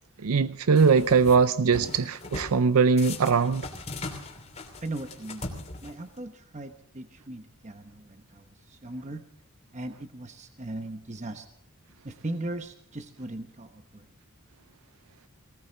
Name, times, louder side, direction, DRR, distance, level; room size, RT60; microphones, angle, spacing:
voice 1, 0.2-3.7, right 5 dB, 80° right, 0.5 m, -21 dB
sound 1, 0.8-1.4 1.7-2.6 3.0-6.2, left 2 dB, 30° left, 2.8 m, -39 dB
voice 2, 4.8-5.4 5.8-9.2 9.7-11.5 12.0-14.1, right 2 dB, 30° right, 1.0 m, -38 dB
19.0 x 18.5 x 3.9 m
head